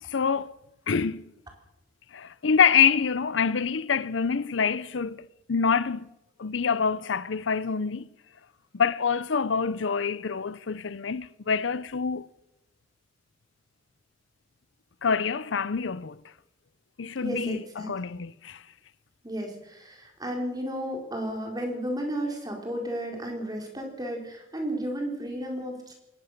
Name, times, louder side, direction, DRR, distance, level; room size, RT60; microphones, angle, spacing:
voice 1, 0.1-0.6 0.9-1.2 2.1-6.1 6.4-8.1 8.7-12.3 15.0-16.2 17.0-18.6, left 6 dB, 80° left, 0.6 m, -26 dB
voice 2, 17.2-18.2 19.2-25.9, equal, 20° right, 4.4 m, -33 dB
21.5 x 18.0 x 6.7 m
head